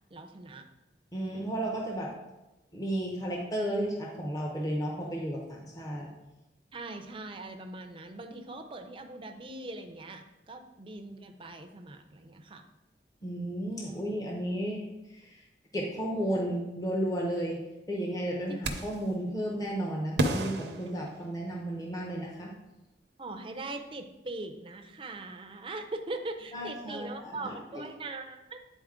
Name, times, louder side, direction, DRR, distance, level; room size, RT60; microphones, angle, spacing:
voice 1, 0.1-0.7 6.7-12.6 18.5-18.6 23.2-28.6, right 2 dB, 30° right, 5 dB, 0.5 m, -41 dB
voice 2, 1.1-2.1 2.7-6.1 13.2-14.8 15.1-15.4 15.7-17.6 17.9-22.5 26.5-27.8, right 1 dB, 20° left, -2 dB, 0.8 m, -33 dB
sound 1, 18.6-19.1 20.2-21.7, right 1 dB, 70° right, 0.7 m, -32 dB
9.1 x 4.0 x 3.7 m, 1.0 s
head